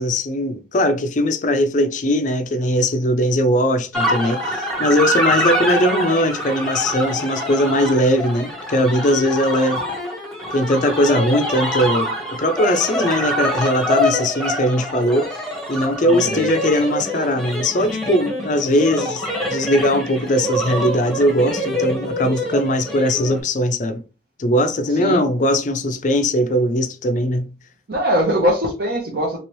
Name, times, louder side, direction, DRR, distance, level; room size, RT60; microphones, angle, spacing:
voice 1, 0.0-9.8 10.5-15.4 15.7-19.2 19.5-24.0 24.4-27.5, equal, 40° left, 0.4 m, -19 dB
sound 1, 3.9-23.4, equal, 5° left, 0.8 m, -25 dB
voice 2, 16.1-16.5 24.9-25.2 27.9-29.4, equal, 55° right, 0.7 m, -21 dB
3.0 x 3.0 x 3.0 m
head